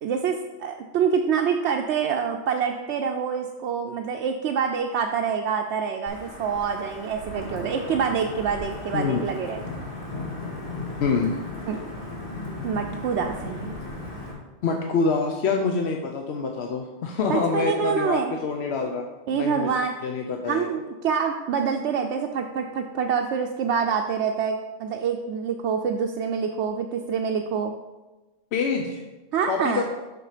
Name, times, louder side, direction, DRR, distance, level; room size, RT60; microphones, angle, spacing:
voice 1, 0.0-9.8 11.7-11.8 12.6-13.7 17.3-18.4 19.3-19.9 20.4-27.7 29.3-29.8, right 6 dB, 85° right, 3 dB, 0.9 m, -26 dB
Wind / Thunder / Rain, 6.1-14.3, left 2 dB, 55° left, 2.0 m, -36 dB
voice 2, 8.9-9.3 11.0-11.4 14.6-19.1 19.3-19.7 20.0-20.7 28.5-29.0 29.4-29.8, left 5 dB, 75° left, 3 dB, 0.9 m, -26 dB
7.0 x 6.0 x 4.9 m, 1.1 s
omnidirectional pair, 1.1 m